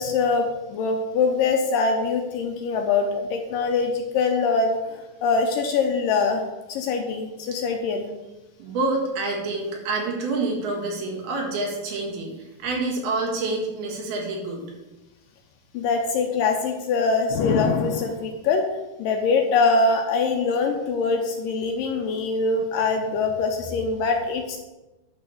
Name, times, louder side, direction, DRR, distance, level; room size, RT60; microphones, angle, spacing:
voice 1, 0.0-6.4 6.7-8.1 15.7-18.6 19.0-24.6, left 4 dB, 80° left, 4 dB, 2.1 m, -23 dB
voice 2, 8.6-14.6, right 3 dB, 80° right, -1 dB, 3.7 m, -27 dB
10.5 x 3.5 x 7.0 m, 1.0 s
omnidirectional pair, 4.4 m